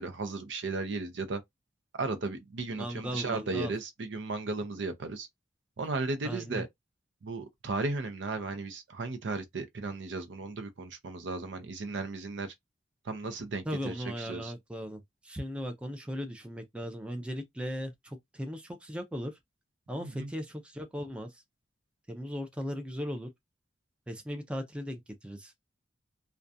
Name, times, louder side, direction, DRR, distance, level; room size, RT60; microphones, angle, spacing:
voice 1, 0.0-1.4 1.9-5.3 5.8-6.7 7.2-12.5 13.0-14.5 20.0-20.3, right 3 dB, 75° right, 0.5 m, -35 dB
voice 2, 2.8-3.7 6.2-6.6 13.6-19.4 19.9-21.3 22.1-23.3 24.1-25.5, equal, 5° right, 0.4 m, -37 dB
2.4 x 2.2 x 2.6 m
head